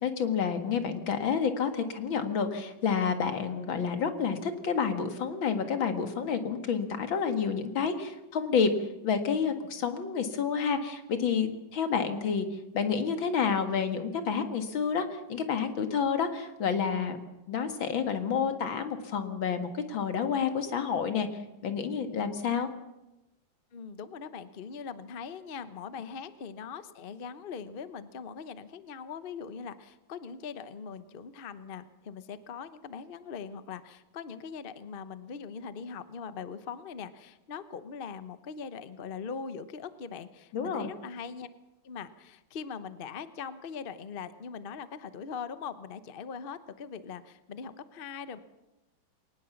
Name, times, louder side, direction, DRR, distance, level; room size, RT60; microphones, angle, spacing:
voice 1, 0.0-8.7 9.0-12.5 12.7-17.2 17.5-21.3 21.6-22.7 40.5-40.9, left 6 dB, 85° left, 7 dB, 2.5 m, -29 dB
voice 2, 23.7-41.5 41.8-48.4, left 6 dB, 40° left, 12 dB, 0.9 m, -41 dB
22.0 x 19.0 x 7.2 m, 0.98 s
omnidirectional pair, 2.1 m